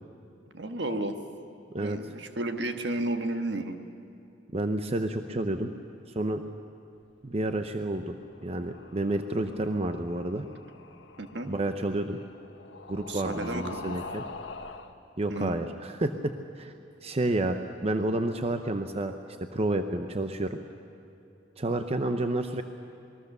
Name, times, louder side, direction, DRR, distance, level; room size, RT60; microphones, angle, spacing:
voice 1, 0.5-1.2 1.8-3.7 11.2-11.5 12.9-13.9 15.3-15.6, right 2 dB, 70° right, 6 dB, 1.5 m, -32 dB
voice 2, 4.5-5.7 6.1-6.4 7.2-8.2 8.4-10.4 11.5-12.2 12.9-14.2 15.2-16.7 17.0-19.1 19.5-20.6 21.6-22.6, right 1 dB, 35° right, 7 dB, 0.7 m, -30 dB
sound 1, 8.2-14.9, left 4 dB, 90° left, 1.2 m, -45 dB
27.0 x 20.5 x 6.8 m, 2.7 s
head